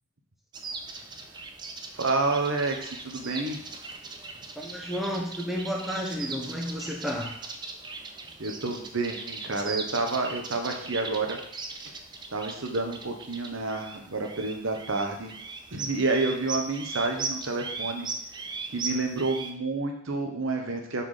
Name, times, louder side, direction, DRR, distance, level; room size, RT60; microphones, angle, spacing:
sound 1, 0.5-19.5, right 4 dB, 20° right, 0.4 m, -39 dB
voice 1, 1.9-3.6 8.4-11.4 11.7-11.9 12.3-15.4 15.7-18.1 18.7-21.0, right 3 dB, 70° right, 3 dB, 1.0 m, -29 dB
voice 2, 4.6-7.4, equal, ahead, -2 dB, 0.9 m, -32 dB
5.6 x 4.3 x 4.9 m, 0.71 s
head